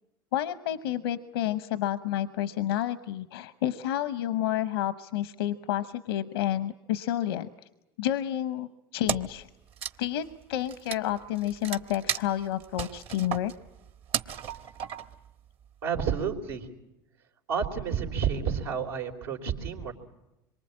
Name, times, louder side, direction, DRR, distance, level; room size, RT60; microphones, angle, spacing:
voice 1, 0.3-7.5 8.0-9.5 10.0-13.5, left 12 dB, 90° left, 12 dB, 0.9 m, -30 dB
Wood, 9.1-9.4 9.7-15.3, right 8 dB, 50° right, 1.3 m, -34 dB
voice 2, 15.8-16.7 17.5-19.9, right 7 dB, 90° right, 1 dB, 3.8 m, -30 dB
26.5 x 23.5 x 8.6 m, 0.93 s
hypercardioid pair, 95°, 12 cm